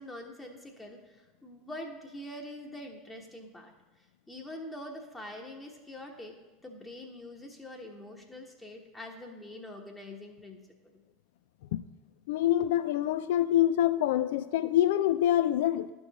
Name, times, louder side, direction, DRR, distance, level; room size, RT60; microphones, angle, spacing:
voice 1, 0.0-3.7 4.3-6.4 6.6-10.6, left 1 dB, 10° left, 1 dB, 1.1 m, -44 dB
voice 2, 12.3-15.9, left 12 dB, 65° left, 13 dB, 0.3 m, -26 dB
11.0 x 4.7 x 4.1 m, 1.2 s
hypercardioid pair, 80°, 0 cm